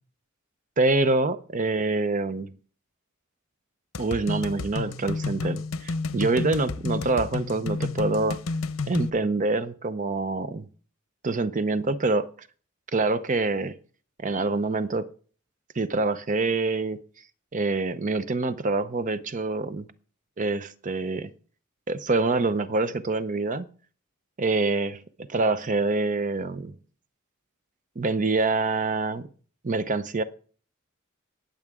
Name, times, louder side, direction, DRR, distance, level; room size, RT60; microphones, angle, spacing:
voice 1, 0.8-2.5 4.0-8.4 8.9-10.7 11.2-12.3 12.9-13.7 14.2-15.1 15.7-17.0 17.5-19.9 20.4-21.3 21.9-23.7 24.4-26.7 28.0-29.3 29.6-30.2, right 3 dB, 40° right, 0.7 m, -26 dB
sound 1, 3.9-9.1, left 3 dB, 85° left, 0.7 m, -30 dB
20.0 x 7.2 x 3.6 m
head